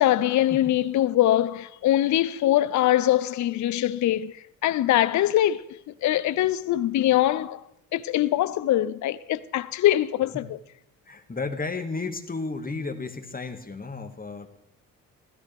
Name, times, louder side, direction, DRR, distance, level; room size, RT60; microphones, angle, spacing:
voice 1, 0.0-7.6 7.9-10.5, left 13 dB, 50° left, 0.6 m, -23 dB
voice 2, 11.1-14.5, left 3 dB, 25° left, 1.8 m, -33 dB
16.0 x 14.0 x 3.5 m
hypercardioid pair, 55°, 36 cm